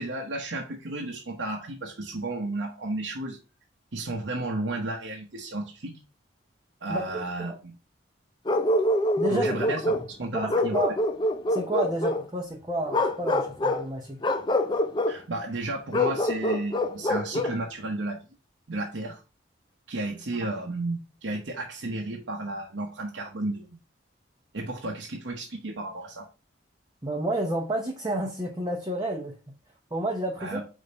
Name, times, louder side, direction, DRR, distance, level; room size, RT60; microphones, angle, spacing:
voice 1, 0.0-3.4 3.9-5.9 6.8-7.7 9.3-10.8 15.1-18.3 18.7-19.2 19.9-23.7 24.5-26.3 30.4-30.6, right 2 dB, 70° right, 0 dB, 1.0 m, -33 dB
Bark, 8.4-10.1 10.5-12.2 12.9-13.9 14.2-15.2 15.9-17.6, left 1 dB, 25° left, 0.5 m, -25 dB
voice 2, 9.2-9.5 10.4-10.9 11.5-14.2 27.0-29.3 29.9-30.6, right 1 dB, 20° right, 0 dB, 0.8 m, -30 dB
5.2 x 3.7 x 5.4 m, 0.32 s
head